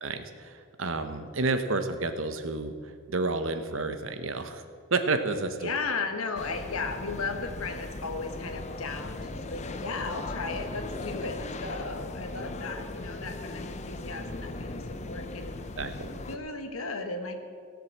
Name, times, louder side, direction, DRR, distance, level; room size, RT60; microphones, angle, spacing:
voice 1, 0.0-4.6 4.9-5.7 15.8-16.2, right 3 dB, 65° right, 9 dB, 1.0 m, -30 dB
voice 2, 5.6-15.6 16.3-17.4, left 4 dB, 85° left, 6 dB, 1.4 m, -35 dB
sound 1, 6.3-16.4, left 2 dB, 30° left, 0.6 m, -38 dB
17.0 x 7.7 x 7.3 m, 2.2 s
head